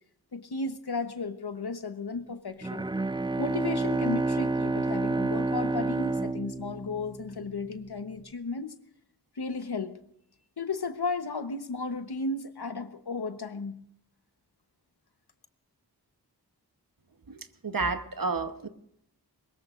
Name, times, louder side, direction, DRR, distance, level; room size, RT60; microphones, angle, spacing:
voice 1, 0.3-2.9 3.4-8.7 9.4-9.9 10.6-13.8, left 3 dB, 75° left, 9 dB, 1.1 m, -34 dB
Bowed string instrument, 2.6-7.6, right 3 dB, 15° right, 0.5 m, -29 dB
voice 2, 17.3-18.7, right 3 dB, 60° right, 9 dB, 1.1 m, -31 dB
22.0 x 20.5 x 2.5 m, 0.73 s
wide cardioid pair, 50°, 39 cm